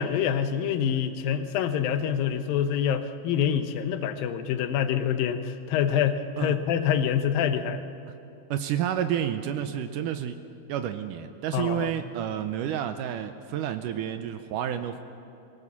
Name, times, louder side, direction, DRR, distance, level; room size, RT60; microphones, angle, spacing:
voice 1, 0.0-7.9 11.5-11.9, left 8 dB, 80° left, 9 dB, 2.6 m, -26 dB
voice 2, 8.5-10.4 10.7-15.0, right 10 dB, 80° right, 9 dB, 2.0 m, -30 dB
22.0 x 17.5 x 7.3 m, 2.8 s
omnidirectional pair, 4.2 m